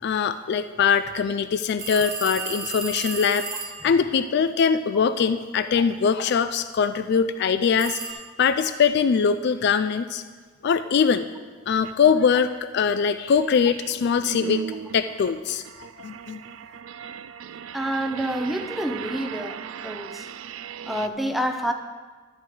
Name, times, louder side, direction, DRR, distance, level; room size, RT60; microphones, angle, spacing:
voice 1, 0.0-3.5 3.8-10.2 10.6-11.3 11.7-14.6 14.9-16.4, left 6 dB, 55° left, 11 dB, 0.3 m, -22 dB
sound 1, 1.8-3.9 7.8-8.1, right 5 dB, 40° right, 1.2 m, -32 dB
sound 2, 11.8-11.9 12.4-21.1, right 8 dB, 70° right, 0.3 m, -37 dB
voice 2, 17.7-20.3 20.8-21.7, equal, ahead, 4 dB, 0.6 m, -28 dB
12.0 x 4.7 x 7.6 m, 1.4 s
head